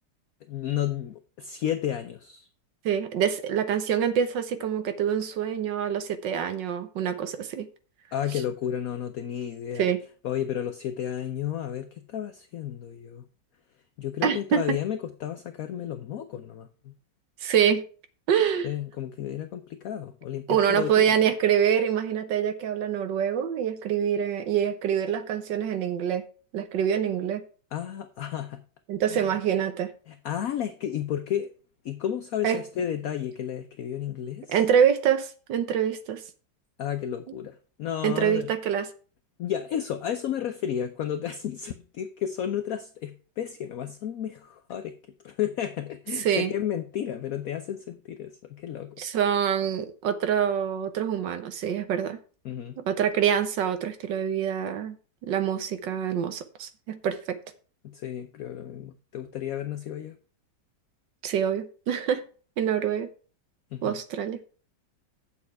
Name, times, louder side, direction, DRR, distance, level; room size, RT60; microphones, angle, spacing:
voice 1, 0.5-2.5 8.1-9.9 10.2-13.2 14.0-16.9 18.6-21.1 27.7-28.6 29.1-29.3 30.1-31.5 31.8-34.6 36.8-38.5 39.4-45.0 45.2-49.0 52.4-52.8 57.8-60.1 63.7-64.0, left 10 dB, 65° left, 1.0 m, -32 dB
voice 2, 2.8-7.7 9.8-10.0 14.2-14.8 17.4-17.8 18.3-18.7 20.5-26.2 26.5-27.4 28.9-29.9 32.4-32.6 34.5-36.2 38.0-38.9 46.2-46.5 49.0-52.2 52.8-55.0 55.2-57.4 61.2-62.2 62.6-63.1 63.8-64.4, right 8 dB, 85° right, 1.7 m, -25 dB
8.9 x 7.0 x 4.7 m
omnidirectional pair, 1.9 m